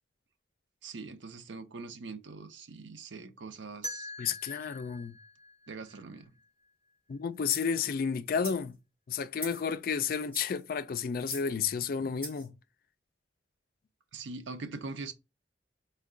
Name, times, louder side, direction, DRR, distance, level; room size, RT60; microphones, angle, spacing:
voice 1, 0.8-4.1 5.7-6.2 14.1-15.1, right 4 dB, 90° right, 0.6 m, -42 dB
sound 1, 3.8-6.7, left 1 dB, 25° right, 1.4 m, -44 dB
voice 2, 4.2-5.2 7.1-8.7 9.1-12.6, left 6 dB, 50° left, 0.3 m, -32 dB
sound 2, 7.5-7.7 8.3-8.6 9.4-9.7 10.2-10.6 11.2-11.5 12.2-12.5, left 1 dB, 10° left, 2.4 m, -41 dB
4.5 x 2.2 x 3.7 m
head